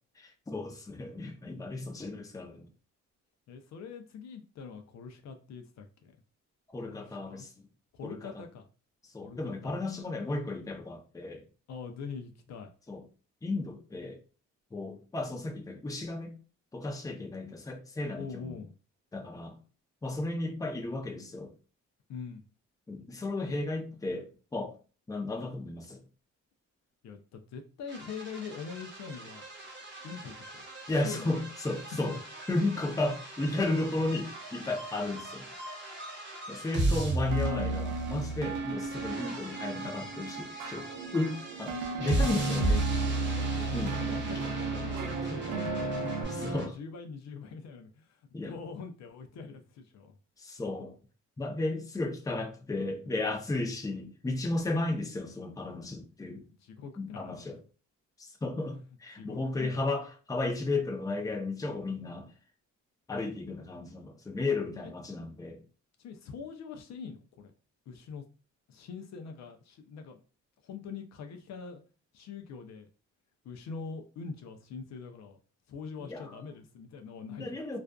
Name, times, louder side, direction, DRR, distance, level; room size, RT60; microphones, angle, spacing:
voice 1, 0.2-2.7 6.7-7.5 8.0-8.3 9.1-11.4 12.9-13.0 13.4-14.2 14.7-16.3 16.7-18.6 19.1-19.6 20.0-21.5 22.9-24.7 25.1-26.0 30.9-32.1 32.5-35.5 36.5-42.9 43.7-44.1 45.2-45.4 46.3-46.7 48.3-48.5 50.4-50.9 51.4-56.4 57.0-57.6 58.2-62.3 63.1-65.6 76.0-76.4 77.4-77.8, left 2 dB, 10° left, 0.5 m, -34 dB
voice 2, 3.5-6.2 6.8-7.5 7.9-8.7 9.2-9.7 11.7-12.7 18.2-18.7 22.1-22.4 27.0-29.5 30.0-30.7 31.0-31.3 32.0-32.2 44.0-50.2 56.6-57.4 58.6-58.7 59.1-59.9 64.8-64.9 66.0-67.5 67.9-68.2 68.7-70.2 70.6-71.8 72.1-72.9 73.4-75.4 75.7-77.8, left 5 dB, 60° left, 0.5 m, -43 dB
sound 1, 27.9-46.7, right 2 dB, 40° right, 0.7 m, -35 dB
sound 2, 37.3-46.2, right 3 dB, 85° right, 0.6 m, -37 dB
2.4 x 2.3 x 2.2 m
cardioid pair, 90°, 30 cm